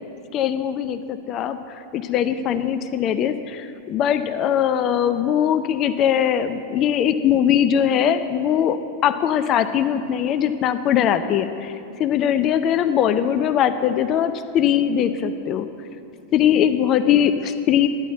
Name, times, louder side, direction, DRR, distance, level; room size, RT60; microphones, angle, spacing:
voice 1, 0.3-1.6 1.9-11.7 12.0-15.7 16.3-17.9, left 9 dB, 35° left, 11 dB, 0.5 m, -21 dB
10.5 x 9.2 x 7.7 m, 2.7 s
figure-of-eight pair, 90°, 0 cm